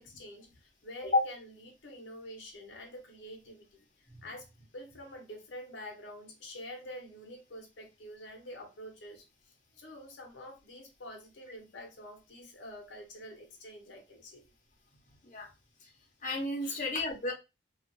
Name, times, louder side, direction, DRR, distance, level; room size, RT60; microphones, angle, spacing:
voice 1, 0.0-14.5 16.6-16.8, left 1 dB, 80° left, 0.7 m, -47 dB
voice 2, 16.2-17.3, left 2 dB, 40° left, 0.8 m, -31 dB
2.6 x 2.4 x 2.5 m
head